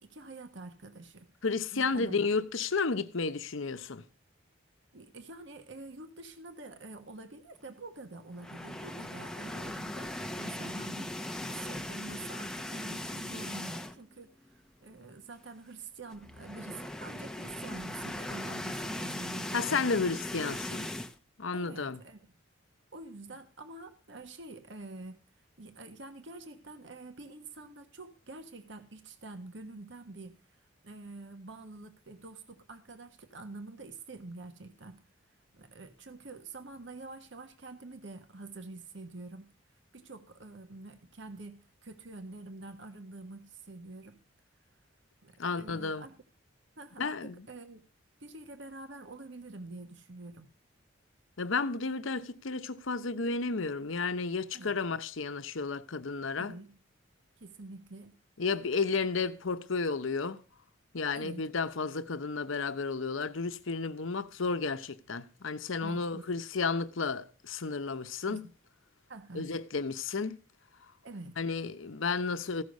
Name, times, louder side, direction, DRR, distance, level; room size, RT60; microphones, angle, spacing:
voice 1, 0.0-1.3 1.7-2.3 4.9-19.8 21.5-22.3 22.9-25.2 25.6-30.4 30.8-35.0 35.5-39.5 39.9-44.2 45.2-46.2 46.8-47.8 48.2-50.5 54.5-54.8 56.4-56.7 57.4-58.1 61.1-61.4 65.8-66.3 68.3-68.5 69.1-69.5 71.0-71.4, right 2 dB, 60° right, 1.3 m, -47 dB
voice 2, 1.4-4.0 19.5-20.9 21.4-22.0 45.4-46.0 47.0-47.4 51.4-56.6 58.4-60.4 60.9-68.4 69.3-70.4 71.4-72.6, left 4 dB, 70° left, 0.8 m, -32 dB
sound 1, 8.3-14.2 14.5-14.7 15.0-15.1 16.1-21.2, left 1 dB, 5° left, 0.8 m, -39 dB
15.5 x 6.4 x 5.2 m
head